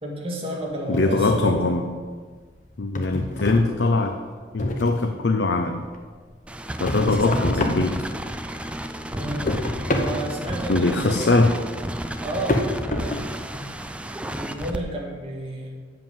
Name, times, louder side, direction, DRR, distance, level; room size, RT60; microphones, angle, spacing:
voice 1, 0.0-1.7 6.9-7.4 9.1-9.6 9.9-11.4 12.2-12.6 13.0-13.2 14.3-15.7, right 1 dB, 30° right, -2 dB, 2.0 m, -31 dB
voice 2, 0.9-1.9 2.8-4.2 4.5-5.8 6.8-8.1 10.7-11.5, left 3 dB, 75° left, 5 dB, 0.7 m, -21 dB
sound 1, 0.9-2.0 2.3-5.2 5.6-8.6 8.9-13.9, left 1 dB, 45° left, 0.9 m, -29 dB
sound 2, 6.5-14.8, right 1 dB, 5° right, 0.4 m, -32 dB
7.6 x 7.2 x 7.6 m, 1.5 s
head